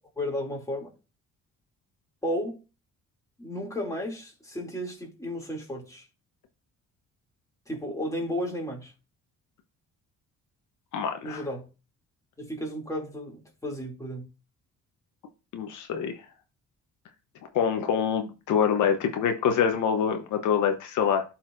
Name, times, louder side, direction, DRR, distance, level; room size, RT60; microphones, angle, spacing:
voice 1, 0.2-0.9 2.2-2.6 3.4-6.1 7.7-8.9 11.2-11.7 12.4-14.2, equal, 10° left, 2.6 m, -33 dB
voice 2, 10.9-11.4 15.5-16.1 17.5-21.2, left 7 dB, 75° left, 0.9 m, -25 dB
12.0 x 4.3 x 2.5 m
cardioid pair, 90°, 30 cm